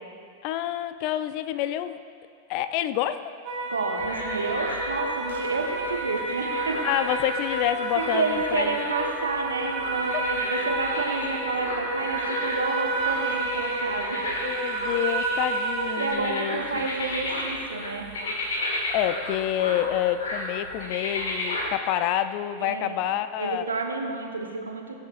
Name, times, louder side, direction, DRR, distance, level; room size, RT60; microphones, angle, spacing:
voice 1, 0.4-2.0 2.5-3.3 6.8-8.8 10.1-10.2 14.4-16.9 18.9-23.6, left 12 dB, 45° left, 12 dB, 0.4 m, -28 dB
sound 1, 3.4-16.1, right 2 dB, 40° right, 2.4 m, -30 dB
voice 2, 3.6-6.8 8.0-14.2 16.0-18.1 22.6-23.1 23.4-25.0, right 4 dB, 75° right, 3 dB, 1.0 m, -30 dB
sound 2, 4.0-21.7, left 1 dB, 65° left, 1.7 m, -34 dB
19.5 x 7.0 x 2.5 m, 2.3 s
figure-of-eight pair, 90°, 0 cm